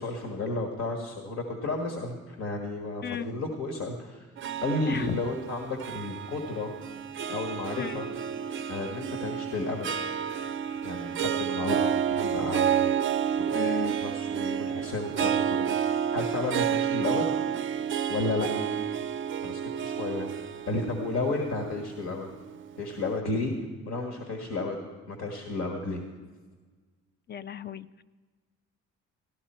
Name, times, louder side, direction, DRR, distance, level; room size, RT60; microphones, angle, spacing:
voice 1, 0.0-4.3 4.6-6.7 7.3-8.1 8.7-9.9 10.8-13.7 14.0-17.3 18.1-18.5 19.4-20.3 20.7-22.3 22.8-23.5 23.9-24.8 25.1-26.0, left 2 dB, 65° left, 2 dB, 1.7 m, -32 dB
Harp, 4.4-22.8, right 8 dB, 40° right, 0.4 m, -30 dB
voice 2, 4.9-5.2 7.8-8.0 11.6-12.0 13.5-14.0 27.3-28.0, left 9 dB, 35° left, 15 dB, 0.5 m, -35 dB
14.5 x 11.5 x 4.4 m, 1.4 s
cardioid pair, 90°, 30 cm